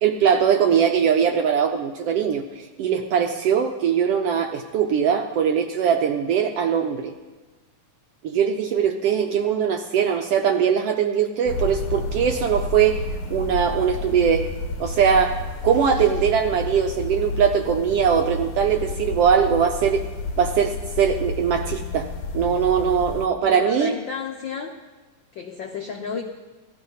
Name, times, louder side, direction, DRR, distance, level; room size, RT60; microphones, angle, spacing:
voice 1, 0.0-7.1 8.2-13.0 13.3-14.5 14.8-20.0 20.4-22.1 22.3-23.9, right 7 dB, 75° right, 5 dB, 1.4 m, -21 dB
sound 1, 11.5-23.3, left 2 dB, 65° left, 1.3 m, -30 dB
voice 2, 13.8-14.1 23.4-24.7 25.3-26.2, left 5 dB, 85° left, 2 dB, 1.0 m, -32 dB
17.5 x 13.0 x 5.5 m, 1.3 s
omnidirectional pair, 3.4 m